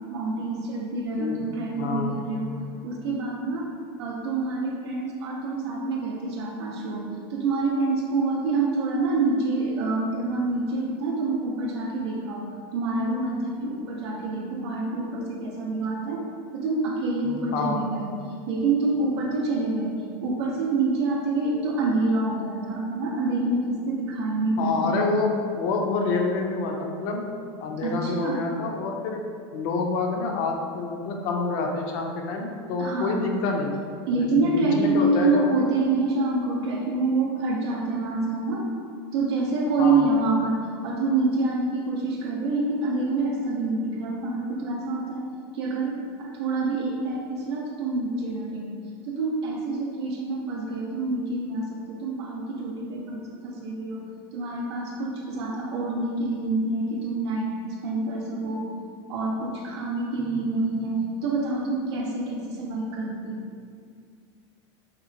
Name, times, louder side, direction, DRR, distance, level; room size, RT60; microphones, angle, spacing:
voice 1, 0.1-2.6 2.8-3.7 4.0-16.2 16.5-18.1 18.5-25.1 27.8-28.4 32.8-33.2 34.1-38.7 39.1-45.3 45.5-48.7 49.0-54.0 54.3-57.6 57.8-58.7 59.1-63.4, right 3 dB, 85° right, -2 dB, 0.4 m, -27 dB
voice 2, 1.7-2.1 17.2-17.8 24.6-27.2 27.6-29.2 29.5-33.8 34.2-35.5 39.8-40.1 60.2-60.3, left 4 dB, 55° left, 2 dB, 0.4 m, -27 dB
2.9 x 2.1 x 2.5 m, 2.2 s
supercardioid pair, 130°, 14 cm